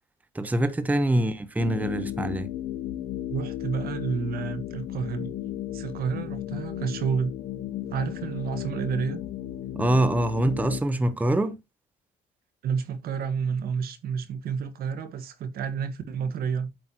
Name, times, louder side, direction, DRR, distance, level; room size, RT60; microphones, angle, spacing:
voice 1, 0.3-2.5 9.7-11.6, right 1 dB, 10° right, 0.8 m, -24 dB
sound 1, 1.6-10.8, left 12 dB, 85° left, 1.0 m, -34 dB
voice 2, 3.3-5.3 5.7-7.3 7.9-9.2 12.6-16.7, right 6 dB, 65° right, 1.5 m, -30 dB
8.5 x 7.9 x 2.9 m
cardioid pair, 110°, 17 cm